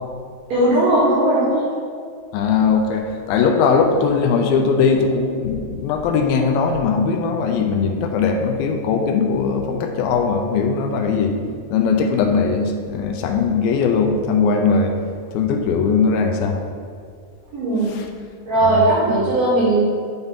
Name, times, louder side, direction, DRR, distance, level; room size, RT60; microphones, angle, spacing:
voice 1, 0.5-1.6 17.5-17.9 18.5-19.8, right 1 dB, 65° right, -8 dB, 1.7 m, -17 dB
voice 2, 2.3-11.3 11.7-14.9 15.3-16.6 17.8-18.1 18.6-18.9, left 5 dB, 85° left, 4 dB, 2.3 m, -19 dB
7.9 x 4.0 x 3.5 m, 2.1 s
omnidirectional pair, 4.3 m